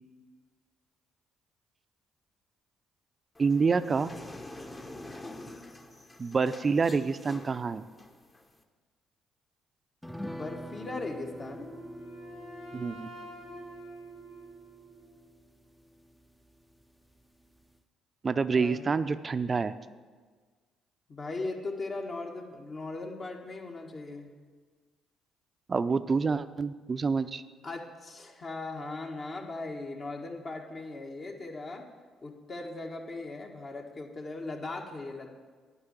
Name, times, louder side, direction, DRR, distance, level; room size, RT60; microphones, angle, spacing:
sound 1, 3.3-8.6, left 2 dB, 25° left, 1.1 m, -46 dB
voice 1, 3.4-4.1 6.2-7.8 12.7-13.1 18.2-19.7 25.7-27.4, right 4 dB, 40° right, 12 dB, 0.5 m, -27 dB
sound 2, 10.0-16.8 17.1-17.2 17.6-17.7, equal, 5° left, 0.6 m, -46 dB
voice 2, 10.2-11.7 18.5-18.9 21.1-24.3 27.6-31.8 32.2-35.3, left 2 dB, 45° left, 1 dB, 1.6 m, -38 dB
Wind instrument woodwind instrument, 11.4-15.3, right 1 dB, 75° left, 2.1 m, -47 dB
9.9 x 5.5 x 8.2 m, 1.5 s
hypercardioid pair, 50°, 0 cm